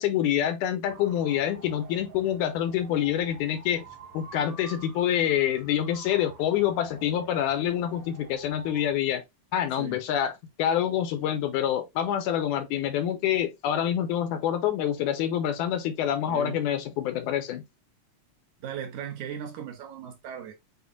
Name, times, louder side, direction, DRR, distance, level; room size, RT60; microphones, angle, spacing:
voice 1, 0.0-3.8 4.1-9.2 9.5-10.3 10.6-17.6, left 10 dB, 80° left, 2.0 m, -26 dB
sound 1, 0.9-8.9, right 4 dB, 55° right, 1.9 m, -49 dB
voice 2, 16.3-16.6 18.6-20.5, right 8 dB, 75° right, 2.3 m, -37 dB
7.0 x 2.4 x 2.5 m
omnidirectional pair, 3.6 m